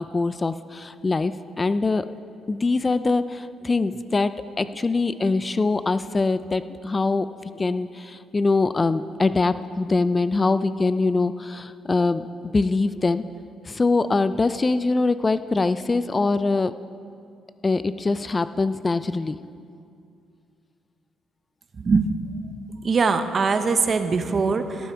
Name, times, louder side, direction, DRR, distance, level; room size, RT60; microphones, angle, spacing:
voice 1, 0.0-1.3 1.6-2.1 2.5-4.3 4.6-7.3 7.5-13.2 13.6-16.7 17.6-19.4, left 3 dB, 25° left, 13 dB, 0.3 m, -23 dB
voice 2, 21.7-22.1 22.8-24.9, right 4 dB, 40° right, 9 dB, 0.8 m, -22 dB
16.5 x 9.1 x 4.5 m, 2.4 s
cardioid pair, 90°, 0 cm